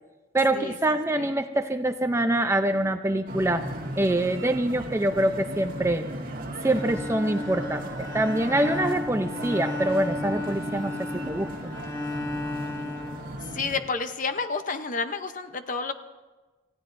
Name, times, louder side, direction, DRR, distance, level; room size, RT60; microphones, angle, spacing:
voice 1, 0.3-3.7 4.0-6.0 6.6-7.8 8.1-10.9 11.3-11.7, right 1 dB, 15° right, 8 dB, 0.5 m, -25 dB
sound 1, 3.3-13.8, right 1 dB, 45° right, 1.9 m, -37 dB
Bowed string instrument, 6.7-13.9, left 2 dB, 20° left, 3.7 m, -34 dB
voice 2, 13.5-15.9, left 4 dB, 40° left, 8 dB, 0.8 m, -30 dB
29.0 x 15.0 x 2.6 m, 1.2 s
head